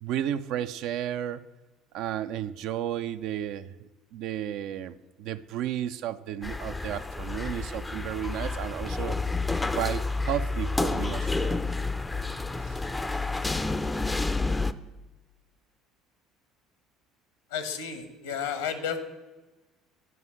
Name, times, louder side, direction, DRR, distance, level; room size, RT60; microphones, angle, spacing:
voice 1, 0.0-1.4 1.9-9.2 9.7-11.6 12.6-12.9, right 11 dB, 55° right, 11 dB, 0.4 m, -33 dB
sound 1, 6.4-14.7, left 3 dB, 15° left, 0.5 m, -29 dB
voice 2, 17.5-19.0, left 7 dB, 70° left, 9 dB, 1.2 m, -32 dB
11.0 x 5.5 x 7.6 m, 1.1 s
figure-of-eight pair, 60°, 0 cm